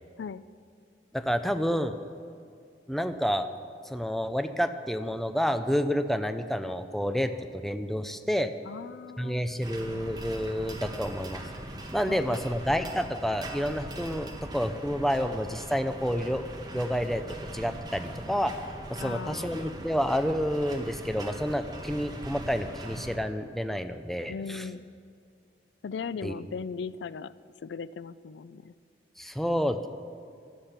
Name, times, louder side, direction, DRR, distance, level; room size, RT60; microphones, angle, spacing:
voice 1, 1.1-1.9 2.9-3.5 3.8-8.5 9.2-11.4 11.9-16.5 16.7-18.5 18.9-24.6 26.2-26.3 29.2-29.9, equal, ahead, 9 dB, 0.5 m, -29 dB
voice 2, 8.7-9.4 12.1-12.4 19.0-19.8 24.3-24.9 25.8-27.3 27.6-28.7, left 5 dB, 85° left, 17 dB, 0.4 m, -38 dB
sound 1, 9.6-23.2, right 1 dB, 25° right, 1.3 m, -41 dB
15.5 x 11.5 x 5.8 m, 2.4 s
head